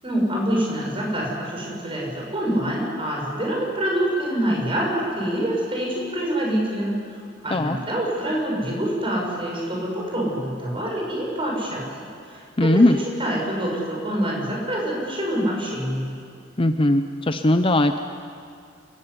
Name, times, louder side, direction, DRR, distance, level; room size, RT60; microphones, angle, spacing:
voice 1, 0.0-7.1 7.4-11.8 12.3-12.8 13.2-16.1, right 1 dB, 25° right, -2 dB, 7.2 m, -26 dB
voice 2, 12.6-13.0 16.6-18.0, left 1 dB, 25° left, 8 dB, 0.7 m, -19 dB
27.5 x 16.0 x 9.9 m, 2.3 s
head